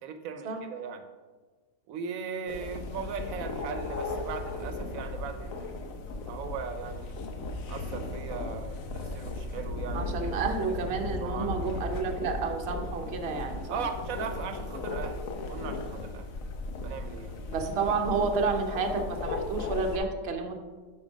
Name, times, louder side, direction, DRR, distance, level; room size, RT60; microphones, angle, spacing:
voice 1, 0.0-1.0 1.9-5.7 6.3-7.1 7.7-10.3 11.2-11.5 13.7-15.2 15.5-16.3 16.8-17.4, right 6 dB, 85° right, 7 dB, 1.1 m, -38 dB
sound 1, 2.5-20.0, left 2 dB, 80° left, 1.2 m, -36 dB
voice 2, 9.9-13.8 17.5-20.6, right 4 dB, 55° right, 3 dB, 1.0 m, -30 dB
7.3 x 4.5 x 5.1 m, 1.4 s
omnidirectional pair, 1.4 m